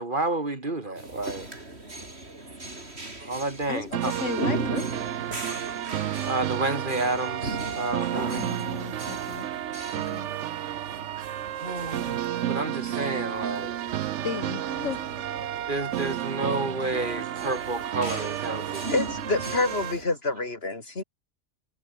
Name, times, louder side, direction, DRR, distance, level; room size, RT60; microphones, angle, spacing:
voice 1, 0.0-1.5 3.2-4.1 5.5-8.5 11.6-12.2 12.5-13.8 15.7-18.9, right 2 dB, 45° right, 2.9 m, -30 dB
sound 1, 1.0-20.1, right 2 dB, 60° right, 5.3 m, -38 dB
voice 2, 3.7-5.1 8.4-9.5 9.9-10.3 14.2-15.0, left 7 dB, 85° left, 1.7 m, -35 dB
sound 2, 3.9-19.9, right 12 dB, 75° right, 1.0 m, -32 dB
voice 3, 18.9-21.0, left 2 dB, 55° left, 3.2 m, -27 dB
omnidirectional pair, 1.3 m